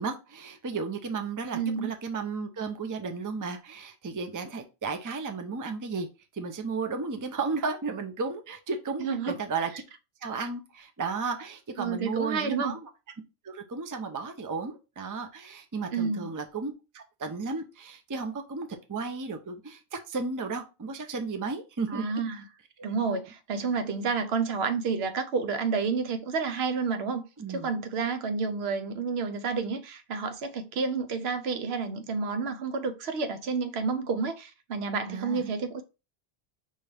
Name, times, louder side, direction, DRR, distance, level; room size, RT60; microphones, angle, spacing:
voice 1, 0.0-6.1 6.3-9.7 10.2-12.9 13.4-22.3 22.8-22.9 27.4-27.7 35.1-35.5, right 4 dB, 25° right, 0.4 m, -34 dB
voice 2, 1.5-1.9 9.0-9.4 11.8-12.7 15.9-16.3 21.9-22.4 22.8-27.2 27.5-35.8, right 5 dB, 80° right, 0.9 m, -30 dB
5.5 x 2.4 x 3.3 m
omnidirectional pair, 1.1 m